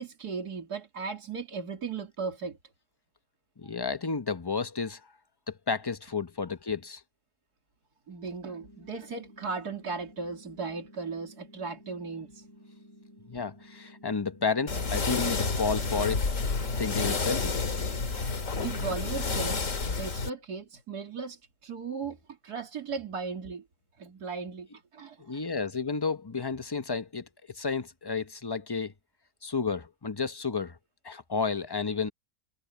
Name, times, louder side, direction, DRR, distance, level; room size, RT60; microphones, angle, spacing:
voice 1, 0.0-2.6 8.1-12.5 18.2-22.2 22.4-23.6 24.0-25.4, right 4 dB, 80° right, 3.3 m, -37 dB
voice 2, 3.6-5.0 5.5-7.0 13.3-16.2 16.8-17.6 25.2-28.9 29.4-30.8 31.0-32.1, left 5 dB, 25° left, 0.5 m, -31 dB
sound 1, 8.4-18.4, left 1 dB, 50° right, 8.4 m, -54 dB
sound 2, 14.7-20.3, left 4 dB, 55° left, 2.3 m, -30 dB
omnidirectional pair, 1.7 m